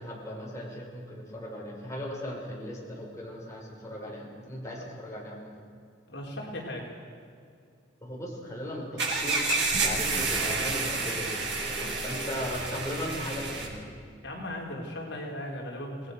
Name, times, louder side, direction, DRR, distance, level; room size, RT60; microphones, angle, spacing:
voice 1, 0.0-5.5 8.0-11.3 11.7-13.9, equal, 15° left, -4 dB, 5.7 m, -37 dB
voice 2, 6.1-6.9 14.2-16.1, left 1 dB, 65° left, -1 dB, 4.6 m, -37 dB
sound 1, 9.0-13.7, right 3 dB, 65° right, 6.4 m, -29 dB
28.0 x 20.0 x 6.6 m, 2.4 s
head